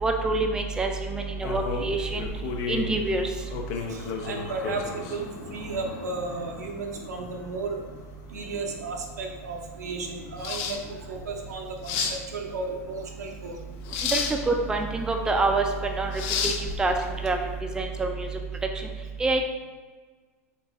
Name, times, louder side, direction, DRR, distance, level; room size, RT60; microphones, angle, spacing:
voice 1, 0.0-2.3 2.7-3.3 14.1-16.9 17.2-17.4 17.7-18.3 19.2-19.4, right 3 dB, 10° right, 3 dB, 0.4 m, -26 dB
sound 1, 1.4-17.6, left 6 dB, 55° left, 0.5 m, -34 dB
voice 2, 3.6-7.8 8.3-13.6, right 3 dB, 85° right, 2 dB, 0.7 m, -34 dB
3.8 x 2.7 x 3.5 m, 1.4 s
hypercardioid pair, 110°, 9 cm